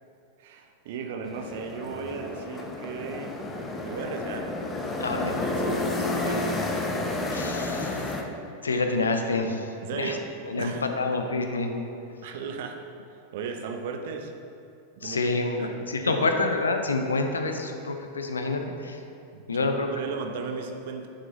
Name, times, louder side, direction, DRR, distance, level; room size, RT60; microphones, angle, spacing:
voice 1, 0.4-3.4 3.8-4.5 5.1-6.6 9.8-10.3 10.6-10.8 12.2-12.8 13.3-14.3 15.0-15.7 16.0-16.4 19.3-21.1, right 5 dB, 55° right, 5 dB, 0.7 m, -36 dB
sound 1, 1.3-8.2, left 2 dB, 20° left, 0.8 m, -31 dB
voice 2, 5.0-5.4 7.3-8.0 8.6-10.2 10.5-11.7 15.0-19.0 19.5-19.9 20.5-20.6, left 3 dB, 75° left, 5 dB, 0.7 m, -27 dB
9.0 x 7.1 x 3.1 m, 2.6 s
figure-of-eight pair, 90°, 0 cm